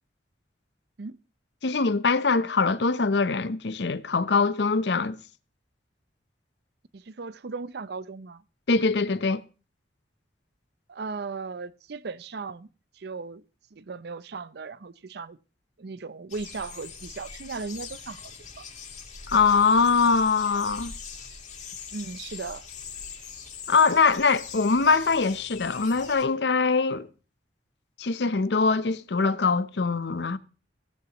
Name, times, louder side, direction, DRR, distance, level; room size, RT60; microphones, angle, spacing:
voice 1, 1.6-5.2 8.7-9.4 19.3-20.9 23.7-27.1 28.0-30.4, left 4 dB, 70° left, 0.7 m, -23 dB
voice 2, 6.9-8.4 10.9-12.7 12.9-13.4 13.7-15.4 15.8-18.3 18.6-18.7 21.9-22.7, right 4 dB, 65° right, 0.6 m, -37 dB
sound 1, 16.3-26.3, left 6 dB, 45° left, 2.7 m, -42 dB
15.5 x 14.0 x 3.0 m
head